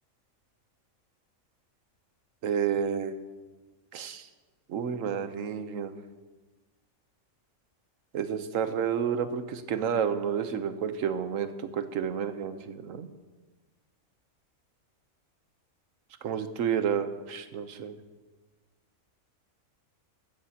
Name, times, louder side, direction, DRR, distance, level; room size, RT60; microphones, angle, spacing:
voice 1, 2.4-3.1 3.9-4.3 4.7-5.9 8.1-13.1 16.2-18.0, right 8 dB, 70° right, 10 dB, 1.2 m, -30 dB
15.0 x 14.0 x 2.9 m, 1.3 s
omnidirectional pair, 1.4 m